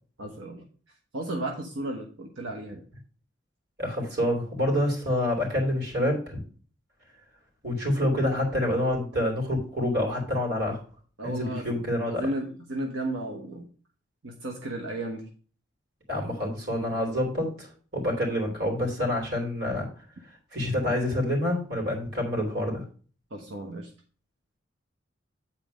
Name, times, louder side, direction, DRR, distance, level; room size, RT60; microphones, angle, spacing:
voice 1, 0.2-0.7 1.1-2.8 11.2-11.8 12.1-13.7 14.2-15.2 23.3-23.9, right 1 dB, 85° right, 1 dB, 1.2 m, -34 dB
voice 2, 3.8-6.4 7.6-10.8 11.2-12.3 16.1-19.9 20.5-22.8, left 1 dB, 55° right, 1 dB, 3.2 m, -27 dB
9.2 x 4.4 x 5.1 m, 0.41 s
head